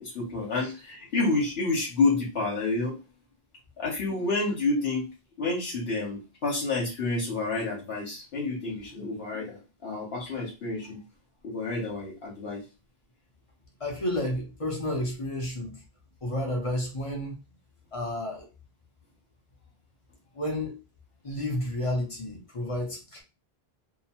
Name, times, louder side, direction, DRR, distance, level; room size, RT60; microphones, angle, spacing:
voice 1, 0.0-3.0 3.8-5.1 5.4-11.0 11.4-12.6, left 3 dB, 75° left, -3 dB, 1.0 m, -29 dB
voice 2, 13.8-15.8 16.2-17.4 17.9-18.5 20.3-20.8 21.2-23.2, left 1 dB, 35° left, 0 dB, 0.7 m, -31 dB
2.8 x 2.0 x 2.7 m, 0.27 s
omnidirectional pair, 1.0 m